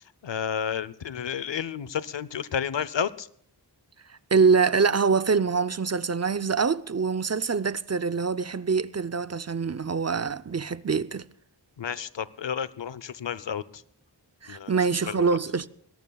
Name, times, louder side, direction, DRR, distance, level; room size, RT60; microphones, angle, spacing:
voice 1, 0.2-3.3 11.8-13.6 14.5-14.7 15.1-15.2, left 7 dB, 85° left, 0.7 m, -31 dB
voice 2, 4.3-11.3 14.4-15.7, right 5 dB, 40° right, 0.6 m, -24 dB
20.5 x 18.0 x 2.3 m
wide cardioid pair, 60°, 43 cm